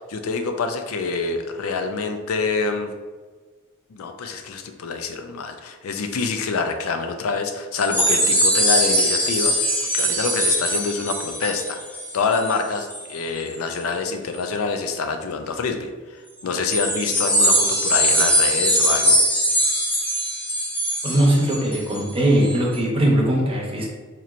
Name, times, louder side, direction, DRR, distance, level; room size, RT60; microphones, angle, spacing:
voice 1, 0.0-2.9 3.9-9.5 9.9-11.8 12.1-19.2, left 4 dB, 85° left, 6 dB, 0.4 m, -26 dB
sound 1, 7.7-13.2 13.5-13.8 14.3-14.4 16.7-22.0 22.4-22.6, equal, 10° left, 0.6 m, -21 dB
voice 2, 21.0-23.9, right 1 dB, 25° right, -2 dB, 0.7 m, -20 dB
4.2 x 3.0 x 2.5 m, 1.4 s
head